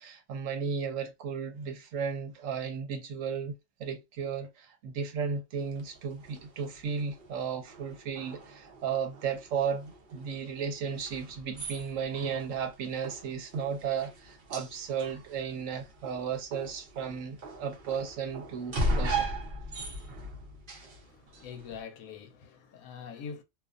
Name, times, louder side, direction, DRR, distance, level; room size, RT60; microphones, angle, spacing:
voice 1, 0.0-3.5 3.8-19.3, right 6 dB, 70° right, 1.0 m, -34 dB
sound 1, 5.6-21.8, right 1 dB, 50° right, 0.6 m, -39 dB
voice 2, 21.0-23.4, left 6 dB, 80° left, 1.0 m, -44 dB
2.5 x 2.4 x 2.4 m
omnidirectional pair, 1.5 m